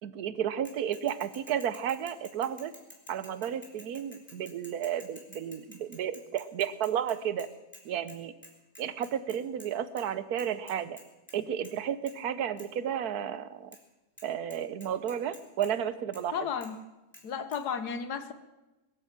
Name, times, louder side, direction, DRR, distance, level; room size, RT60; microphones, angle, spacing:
voice 1, 0.0-2.7 3.1-7.5 7.8-8.3 8.8-11.0 11.3-13.8 14.2-16.3, right 9 dB, 75° right, 14 dB, 1.3 m, -32 dB
Bicycle / Mechanisms, 0.7-7.8 8.1-8.2 8.4-9.7 10.0-10.1 10.4-11.4 11.6-11.8 12.1-12.2 12.6-12.7 13.7-13.8 14.2-14.3 14.5-15.7 16.1-16.2 16.6-16.7 17.1-17.2 17.5-17.6, equal, 5° left, 3.1 m, -51 dB
voice 2, 16.3-16.8 17.2-18.3, left 7 dB, 85° left, 11 dB, 1.7 m, -33 dB
21.0 x 9.0 x 7.5 m, 1.0 s
omnidirectional pair, 1.6 m